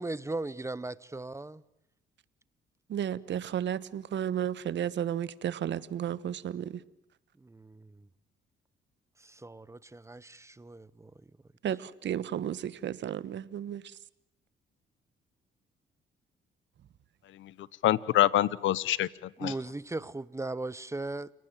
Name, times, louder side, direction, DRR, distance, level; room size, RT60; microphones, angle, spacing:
voice 1, 0.0-1.6 7.4-8.1 9.2-11.1 19.4-21.3, right 2 dB, 15° right, 1.0 m, -38 dB
voice 2, 2.9-6.7 11.6-13.8, right 10 dB, 65° right, 1.4 m, -33 dB
voice 3, 17.3-19.5, left 13 dB, 75° left, 1.0 m, -27 dB
29.5 x 18.5 x 9.0 m
cardioid pair, 90°, 20 cm